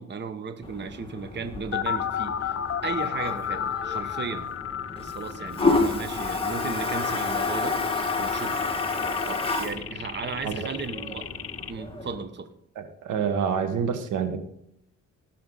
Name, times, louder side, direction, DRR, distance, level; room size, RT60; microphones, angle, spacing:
voice 1, 0.0-4.5 5.0-7.8 8.2-8.6 9.0-11.3 11.7-12.5, right 5 dB, 35° right, 9 dB, 1.1 m, -35 dB
Toilet flush, 0.6-12.2, left 3 dB, 20° left, 1.9 m, -30 dB
sound 1, 1.7-11.7, left 9 dB, 50° left, 0.6 m, -33 dB
voice 2, 12.7-14.4, right 7 dB, 80° right, 8 dB, 1.5 m, -27 dB
18.0 x 6.9 x 4.0 m, 0.75 s
cardioid pair, 90°, 30 cm